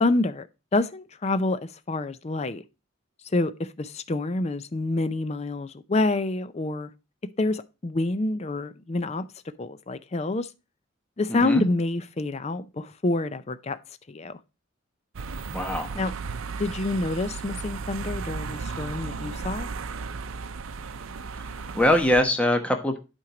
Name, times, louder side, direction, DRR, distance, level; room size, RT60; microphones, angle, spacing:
voice 1, 0.0-0.5 0.7-2.6 3.3-6.9 7.4-9.3 9.6-10.5 11.2-13.8 14.1-14.4 15.9-16.1 16.6-19.7, left 2 dB, 30° left, 0.5 m, -27 dB
voice 2, 11.3-11.6 15.5-15.9 21.7-23.0, left 1 dB, 5° left, 1.0 m, -22 dB
sound 1, 15.1-22.2, right 4 dB, 85° right, 0.6 m, -35 dB
8.6 x 4.5 x 4.9 m
head